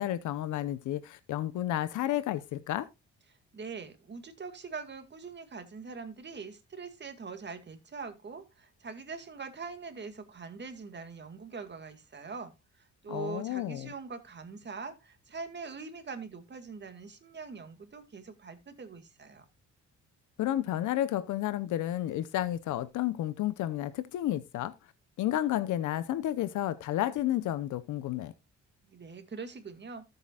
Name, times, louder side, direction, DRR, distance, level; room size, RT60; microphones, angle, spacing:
voice 1, 0.0-2.9 13.1-13.9 20.4-24.7 25.2-28.3, left 13 dB, 80° left, 0.8 m, -31 dB
voice 2, 3.5-19.4 28.8-30.0, right 4 dB, 35° right, 2.2 m, -43 dB
14.0 x 8.0 x 2.4 m
cardioid pair, 90°, 30 cm